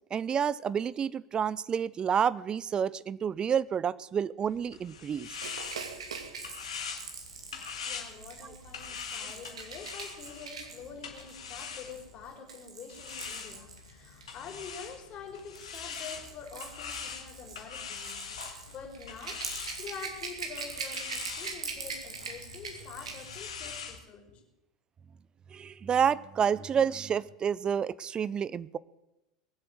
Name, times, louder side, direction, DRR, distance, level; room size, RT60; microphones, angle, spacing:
voice 1, 0.1-5.3 8.4-8.5 25.5-28.8, right 7 dB, 25° right, 21 dB, 0.5 m, -29 dB
sound 1, 4.5-12.3 12.9-24.0, left 6 dB, 75° left, 2.3 m, -43 dB
Rattle / Rattle (instrument), 5.3-14.3 15.3-23.4 23.7-23.8, right 5 dB, 80° right, 2.4 m, -42 dB
voice 2, 7.8-24.4, left 6 dB, 40° left, 3 dB, 4.0 m, -46 dB
20.5 x 7.8 x 7.8 m, 0.95 s
figure-of-eight pair, 85°, 3 cm